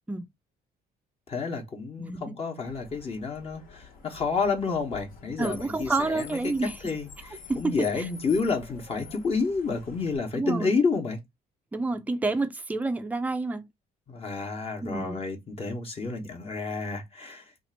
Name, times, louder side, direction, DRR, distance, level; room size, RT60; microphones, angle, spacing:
voice 1, 1.3-6.5 6.8-11.2 14.1-17.4, left 4 dB, 35° left, 1.1 m, -30 dB
voice 2, 2.0-2.3 5.4-6.9 7.5-8.1 10.3-10.8 11.7-13.7 14.8-15.2, right 3 dB, 10° right, 0.5 m, -29 dB
Car, 2.6-10.2, left 6 dB, 60° left, 1.2 m, -47 dB
2.9 x 2.5 x 4.2 m
cardioid pair, 110°, 17 cm